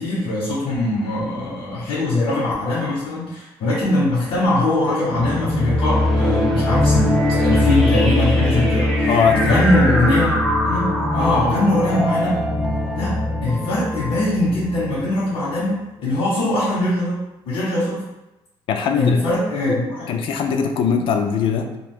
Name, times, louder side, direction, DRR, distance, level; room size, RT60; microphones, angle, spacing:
voice 1, 0.0-10.3 10.6-12.3 12.9-13.1 13.4-17.2 17.5-18.0 18.9-20.1, left 1 dB, 90° left, -9 dB, 0.9 m, -21 dB
sound 1, 5.1-15.3, left 1 dB, ahead, 0.4 m, -20 dB
voice 2, 9.1-9.4 9.7-9.8 18.7-19.4 19.7-19.8 20.1-21.8, left 6 dB, 70° left, 5 dB, 0.4 m, -21 dB
2.6 x 2.3 x 3.5 m, 0.96 s
cardioid pair, 150°, 9 cm